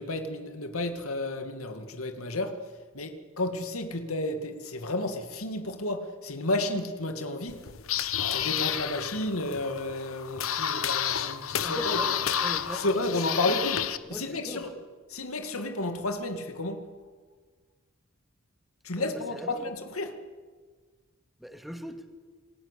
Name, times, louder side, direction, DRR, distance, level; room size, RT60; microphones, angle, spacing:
voice 1, 0.0-2.6 2.9-7.6 8.2-12.2 12.8-13.8 14.1-14.7 15.1-16.8 18.8-20.2, left 2 dB, 90° left, 7 dB, 2.3 m, -32 dB
sound 1, 7.5-14.0, left 9 dB, 70° left, 1.2 m, -30 dB
voice 2, 11.6-13.6 14.0-14.7 18.9-19.7 21.4-22.0, equal, ahead, 6 dB, 2.3 m, -41 dB
28.5 x 20.5 x 8.4 m, 1.5 s
head